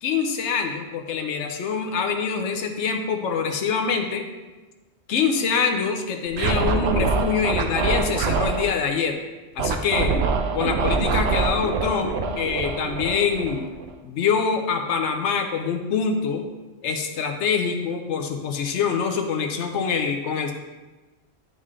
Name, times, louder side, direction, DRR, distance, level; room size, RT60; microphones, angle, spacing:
voice 1, 0.0-4.2 5.1-9.2 9.6-10.1 10.5-13.7 14.0-16.4 16.8-20.5, left 6 dB, 90° left, 4 dB, 1.0 m, -25 dB
Scratching (performance technique), 6.3-8.7 9.6-13.9, right 4 dB, 70° right, 0.8 m, -24 dB
10.5 x 3.7 x 3.2 m, 1.2 s
omnidirectional pair, 1.1 m